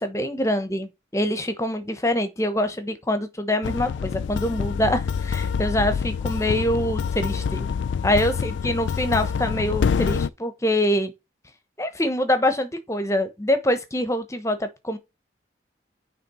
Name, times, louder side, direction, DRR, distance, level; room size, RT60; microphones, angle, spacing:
voice 1, 0.0-7.7 8.0-11.1 11.8-15.0, left 1 dB, 15° left, 0.9 m, -25 dB
sound 1, 3.6-10.3, left 6 dB, 90° left, 0.3 m, -26 dB
9.2 x 3.5 x 4.3 m
head